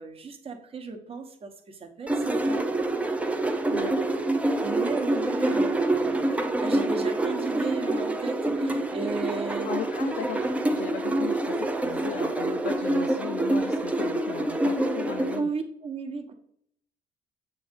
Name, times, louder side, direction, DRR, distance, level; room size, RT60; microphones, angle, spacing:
voice 1, 0.0-2.6 4.6-9.7 15.3-16.3, right 4 dB, 35° right, 5 dB, 1.0 m, -35 dB
sound 1, 2.1-15.4, right 2 dB, 10° right, 0.5 m, -26 dB
voice 2, 3.7-4.0 9.6-15.5, left 10 dB, 65° left, 6 dB, 0.5 m, -37 dB
7.6 x 2.6 x 5.2 m, 0.69 s
cardioid pair, 110°, 17 cm